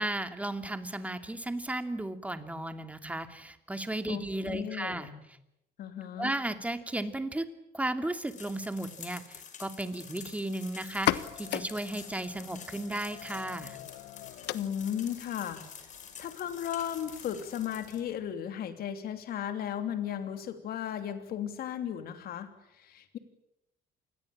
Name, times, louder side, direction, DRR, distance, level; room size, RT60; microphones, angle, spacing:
voice 1, 0.0-5.1 6.2-7.4 7.7-13.8, right 1 dB, 10° right, 8 dB, 2.6 m, -35 dB
voice 2, 4.1-5.2 5.8-6.3 14.5-15.6 16.2-23.2, left 9 dB, 65° left, 8 dB, 3.0 m, -35 dB
sound 1, 8.2-18.0, left 7 dB, 45° left, 5.5 m, -49 dB
sound 2, 10.9-18.3, left 15 dB, 85° left, 1.3 m, -38 dB
27.5 x 21.0 x 8.7 m, 0.84 s
cardioid pair, 110°, 17 cm